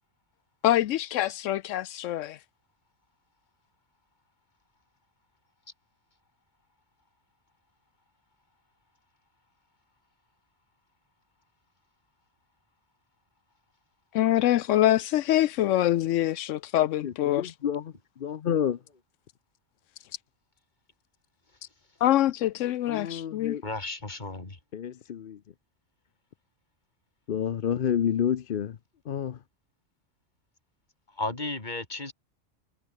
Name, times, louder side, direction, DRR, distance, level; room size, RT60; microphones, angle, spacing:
voice 1, 0.6-2.4 14.1-17.5 22.0-23.6, left 13 dB, 85° left, 1.0 m, -25 dB
voice 2, 17.0-18.8 22.9-23.6 24.7-25.4 27.3-28.8 29.1-29.4, left 9 dB, 55° left, 0.8 m, -29 dB
voice 3, 23.6-24.6 31.1-32.1, left 2 dB, 40° left, 2.9 m, -34 dB
omnidirectional pair, 1.3 m